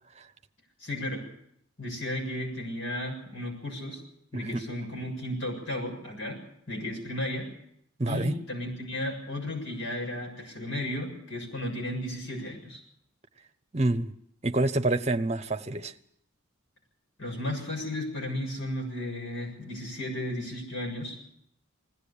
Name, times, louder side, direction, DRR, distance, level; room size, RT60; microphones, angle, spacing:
voice 1, 0.8-1.2 1.8-4.0 4.3-6.4 6.7-7.5 8.0-12.8 17.2-21.2, left 1 dB, 70° left, 7.3 m, -34 dB
voice 2, 8.0-8.4 13.7-14.1 14.4-15.9, right 2 dB, 30° right, 0.9 m, -27 dB
20.5 x 16.5 x 8.5 m
head